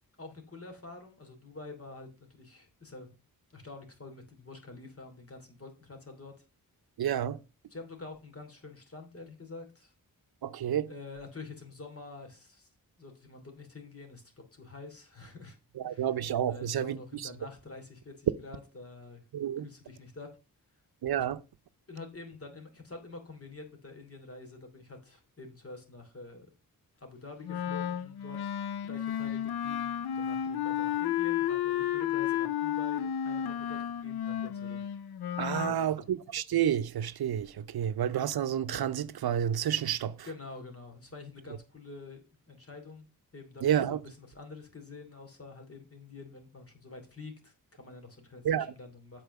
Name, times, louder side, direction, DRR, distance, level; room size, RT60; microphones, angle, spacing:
voice 1, 0.2-3.1 3.5-6.3 7.7-9.9 10.9-12.7 13.0-15.6 15.9-16.1 16.5-19.2 19.6-20.3 21.9-26.5 27.0-28.6 28.8-34.8 35.5-36.1 40.2-43.1 43.3-49.2, left 3 dB, 40° left, 2.9 m, -47 dB
voice 2, 7.0-7.4 10.4-10.9 15.8-17.3 19.3-19.7 21.0-21.4 35.4-40.3 43.6-44.0 48.4-48.7, right 10 dB, 80° right, 0.6 m, -30 dB
Wind instrument woodwind instrument, 27.4-35.8, left 10 dB, 85° left, 0.6 m, -32 dB
8.2 x 4.5 x 6.8 m
wide cardioid pair, 85°, 37 cm